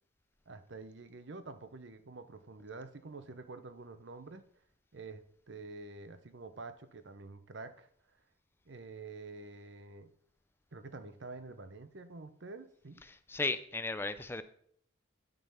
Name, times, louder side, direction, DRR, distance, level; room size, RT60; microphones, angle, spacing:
voice 1, 0.5-4.5 4.9-7.9 8.7-10.1 10.7-13.0, right 3 dB, 60° right, 11 dB, 0.7 m, -48 dB
voice 2, 13.0-14.4, left 3 dB, 10° left, 12 dB, 0.4 m, -35 dB
10.5 x 3.9 x 5.5 m, 0.64 s
head